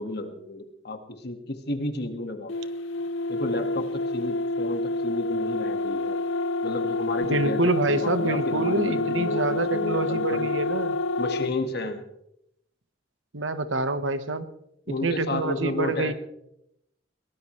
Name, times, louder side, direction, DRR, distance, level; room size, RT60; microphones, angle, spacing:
voice 1, 0.0-2.5 3.3-6.2 6.6-10.5 11.2-12.0 14.9-16.1, left 2 dB, 60° left, 7 dB, 1.8 m, -32 dB
sound 1, 2.5-11.6, left 2 dB, 80° left, 0.5 m, -28 dB
voice 2, 7.2-10.9 13.3-14.5 15.0-16.1, right 2 dB, 80° right, 11 dB, 1.2 m, -26 dB
22.0 x 19.0 x 3.2 m, 0.78 s
head